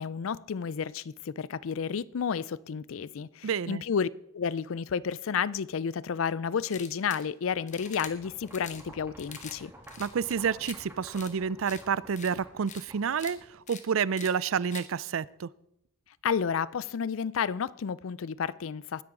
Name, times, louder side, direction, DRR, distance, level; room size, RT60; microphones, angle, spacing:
voice 1, 0.0-9.7 16.2-19.0, left 6 dB, 70° left, 0.4 m, -31 dB
voice 2, 3.4-3.8 10.0-15.5, right 6 dB, 70° right, 0.4 m, -29 dB
Pepper Grinder, 6.6-7.3 7.7-8.1 8.5-8.8 9.2-9.6 9.8-10.8 11.1-11.3 11.7-11.8 12.2-12.3 12.7-12.8 13.1-13.3 13.7-13.8 14.2-14.3 14.7-14.8, left 7 dB, 35° left, 1.3 m, -44 dB
sound 1, 7.7-13.8, right 1 dB, 10° right, 3.0 m, -51 dB
19.0 x 10.5 x 3.8 m
head